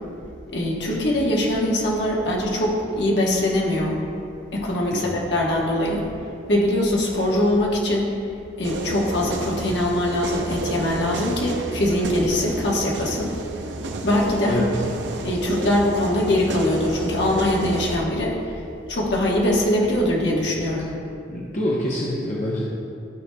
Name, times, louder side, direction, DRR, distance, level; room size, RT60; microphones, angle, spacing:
voice 1, 0.5-4.0 4.5-6.0 6.5-8.1 8.6-13.3 14.0-14.6 15.2-18.6 18.9-20.9, left 1 dB, 70° left, -3 dB, 1.3 m, -22 dB
sound 1, 8.6-18.0, right 2 dB, 80° right, 0.6 m, -31 dB
voice 2, 21.3-22.7, left 1 dB, 40° left, -5 dB, 0.8 m, -26 dB
13.0 x 4.8 x 2.3 m, 2.5 s
head